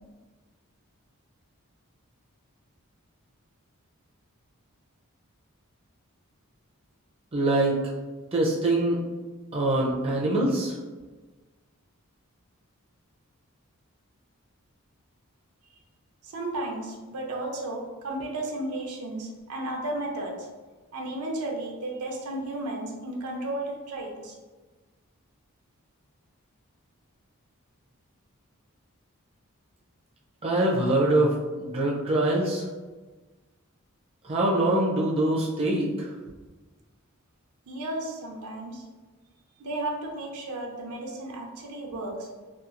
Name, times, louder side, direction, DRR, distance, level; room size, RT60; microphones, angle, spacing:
voice 1, 7.3-7.8 8.3-9.0 9.5-10.7 30.4-32.6 34.3-36.1, right 1 dB, 25° right, -4 dB, 0.4 m, -24 dB
voice 2, 16.2-20.5 20.9-24.3 37.7-38.8 39.6-42.3, right 1 dB, 90° right, 0 dB, 0.6 m, -33 dB
2.8 x 2.3 x 2.4 m, 1.3 s
head